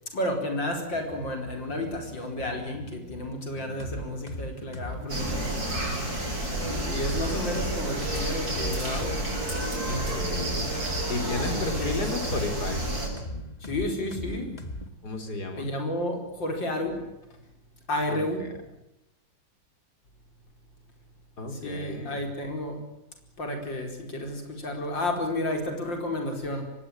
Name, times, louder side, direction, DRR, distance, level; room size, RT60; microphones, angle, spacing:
voice 1, 0.1-5.6 6.6-9.2 11.2-12.0 13.6-14.5 15.6-17.0 17.9-18.4 21.5-22.8 23.4-26.7, left 1 dB, 90° left, 4 dB, 5.3 m, -31 dB
sound 1, 0.9-14.9, left 1 dB, 20° left, 1.9 m, -39 dB
voice 2, 5.1-6.0 9.8-10.8 11.1-12.8 15.0-15.7 18.1-18.5 21.4-22.2, left 2 dB, 60° left, 6 dB, 4.4 m, -33 dB
sound 2, 5.1-13.1, right 1 dB, 55° right, 7.9 m, -30 dB
24.5 x 20.0 x 9.0 m, 0.91 s
omnidirectional pair, 2.0 m